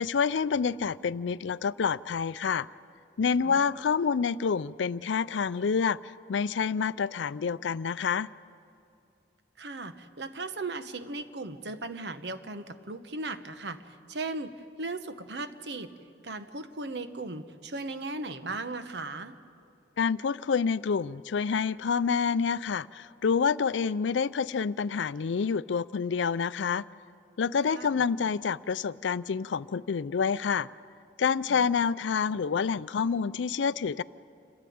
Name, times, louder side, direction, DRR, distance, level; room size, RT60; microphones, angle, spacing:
voice 1, 0.0-2.7 3.2-8.3 20.0-26.8 27.4-30.7 31.2-34.0, left 6 dB, 80° left, 18 dB, 0.4 m, -28 dB
voice 2, 3.4-3.8 9.6-15.9 16.2-19.4 27.7-28.0 31.5-31.8, right 3 dB, 65° right, 10 dB, 1.0 m, -37 dB
28.5 x 13.0 x 9.4 m, 2.5 s
head